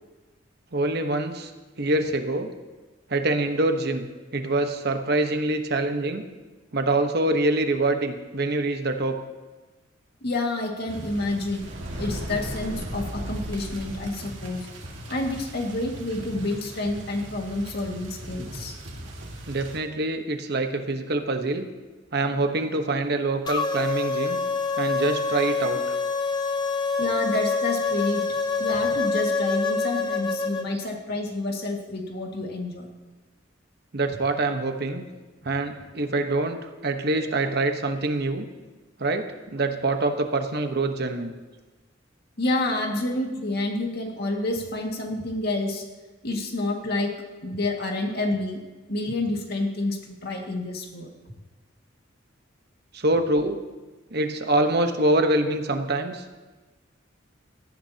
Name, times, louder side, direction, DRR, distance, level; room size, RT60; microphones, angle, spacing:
voice 1, 0.7-1.5 1.8-2.5 3.1-6.2 6.7-9.2 19.5-21.7 22.1-24.4 24.8-25.9 33.9-35.0 35.4-38.4 39.0-41.3 52.9-53.6 54.1-56.2, right 2 dB, 60° right, 6 dB, 1.1 m, -25 dB
voice 2, 10.2-11.7 12.0-14.7 15.1-18.8 27.0-28.3 28.6-32.9 42.4-45.8 46.2-47.1 47.4-48.6 48.9-51.1, left 2 dB, 55° left, 1 dB, 2.1 m, -28 dB
sound 1, 10.9-19.8, right 1 dB, 75° right, 2.0 m, -37 dB
sound 2, 23.5-30.7, left 4 dB, 25° left, 0.9 m, -26 dB
17.5 x 13.5 x 2.9 m, 1.2 s
head